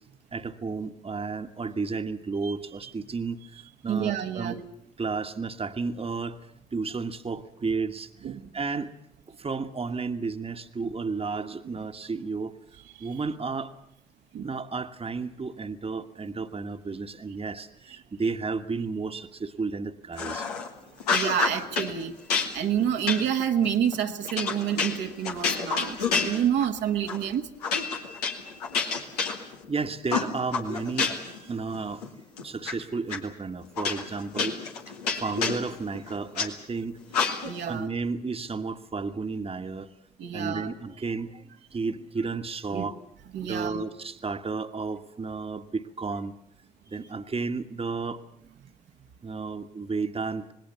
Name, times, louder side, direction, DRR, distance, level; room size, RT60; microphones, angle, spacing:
voice 1, 0.3-4.6 5.0-6.4 6.7-8.1 8.5-8.9 9.4-12.6 13.0-13.7 14.4-20.5 29.7-31.2 31.5-32.0 32.4-34.6 35.2-37.0 37.6-39.9 40.3-42.9 43.5-46.4 46.9-48.2 49.2-50.5, right 4 dB, 30° right, 8 dB, 1.5 m, -32 dB
voice 2, 3.9-4.6 8.2-8.5 12.9-13.1 14.3-14.5 21.1-22.1 22.5-27.5 37.4-37.9 40.2-40.7 42.7-42.9 43.3-43.9, right 9 dB, 65° right, 3 dB, 1.6 m, -28 dB
sound 1, 20.2-20.7 21.0-21.9 22.3-26.8 27.1-27.3 27.6-29.7 30.1-31.4 31.7-32.7 33.1-33.2 33.8-36.5 37.1-37.7, left 5 dB, 85° left, 2.0 m, -29 dB
26.5 x 20.0 x 7.0 m, 0.75 s
hypercardioid pair, 40°, 19 cm